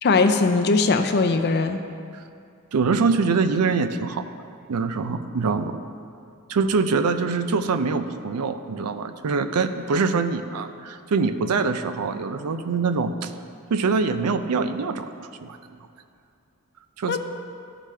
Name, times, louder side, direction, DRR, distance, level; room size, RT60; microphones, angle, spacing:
voice 1, 0.0-1.8 17.1-17.2, left 3 dB, 50° left, 6 dB, 0.5 m, -20 dB
voice 2, 2.7-4.3 4.7-5.8 6.5-13.3 13.7-15.1 15.4-15.6 17.0-17.2, right 4 dB, 75° right, 10 dB, 0.4 m, -24 dB
13.0 x 5.0 x 3.2 m, 2.4 s
head